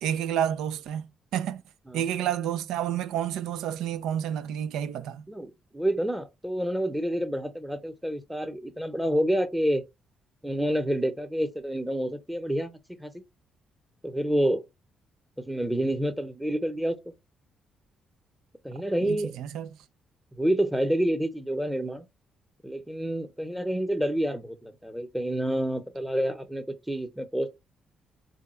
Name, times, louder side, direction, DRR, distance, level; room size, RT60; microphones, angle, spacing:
voice 1, 0.0-1.6 1.9-5.3 19.0-19.7, right 10 dB, 85° right, 0.5 m, -30 dB
voice 2, 5.3-9.8 10.4-13.1 14.0-14.6 15.4-17.0 18.6-19.4 20.3-22.1 22.6-27.5, right 1 dB, 5° right, 0.8 m, -28 dB
3.6 x 2.3 x 4.2 m
cardioid pair, 90°, 0 cm